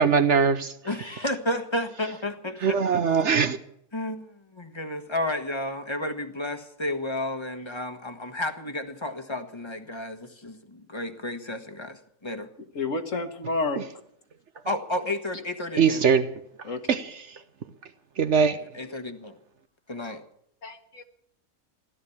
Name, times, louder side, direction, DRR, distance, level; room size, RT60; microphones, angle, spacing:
voice 1, 0.0-0.7 2.6-3.6 15.8-16.3 16.9-17.1 18.2-18.6, right 6 dB, 55° right, 1.0 m, -21 dB
voice 2, 0.8-3.0 3.9-12.5 14.6-16.0 18.7-19.4 19.9-20.2, left 1 dB, 20° left, 1.3 m, -32 dB
voice 3, 12.7-13.8 16.6-16.9 20.6-21.0, left 3 dB, 60° left, 1.8 m, -30 dB
16.0 x 12.5 x 7.1 m
omnidirectional pair, 1.5 m